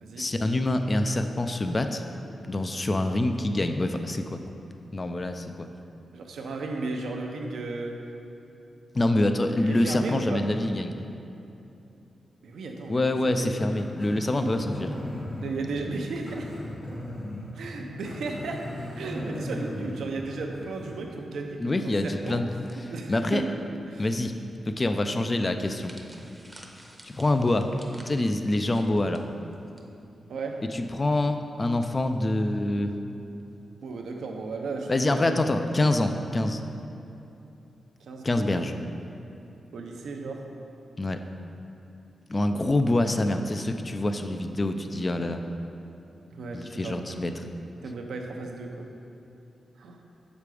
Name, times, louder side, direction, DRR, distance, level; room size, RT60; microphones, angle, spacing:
voice 1, 0.2-2.0 2.4-4.4 4.9-5.7 8.9-10.9 12.9-14.9 21.6-22.5 23.1-23.4 24.0-24.4 24.7-25.9 27.0-27.7 28.0-29.2 30.7-32.9 34.9-36.6 38.2-38.7 41.0-41.2 42.3-45.4 46.5-47.3, left 2 dB, 30° left, 7 dB, 0.4 m, -26 dB
voice 2, 6.1-8.0 9.6-10.4 12.4-13.5 14.4-14.7 15.4-16.5 17.5-18.7 18.9-22.4 22.9-23.4 23.9-24.1 30.3-30.6 33.8-35.4 38.0-38.6 39.7-40.4 46.3-47.2 47.8-48.9 49.8-50.0, right 3 dB, 85° right, 2 dB, 0.7 m, -35 dB
Growling, 13.7-21.0, left 1 dB, 60° left, 1.7 m, -37 dB
sound 1, 25.6-29.8 30.1-30.3 31.2-31.5, right 1 dB, 10° right, 0.8 m, -51 dB
6.7 x 5.1 x 4.8 m, 2.9 s
cardioid pair, 90°, 0 cm